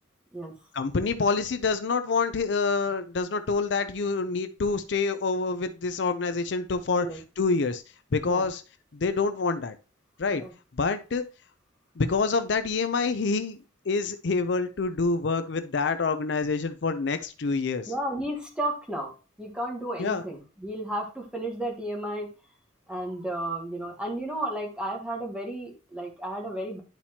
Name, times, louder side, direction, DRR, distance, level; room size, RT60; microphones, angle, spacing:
voice 1, 0.7-7.1 7.4-7.8 8.1-8.6 8.9-9.7 10.2-10.4 10.8-11.2 12.0-13.6 13.9-17.9 20.0-20.2, left 4 dB, 65° left, 10 dB, 0.5 m, -27 dB
voice 2, 17.9-19.1 19.4-22.3 22.9-26.8, right 1 dB, 5° right, 1 dB, 1.4 m, -33 dB
10.5 x 4.3 x 2.9 m, 0.33 s
head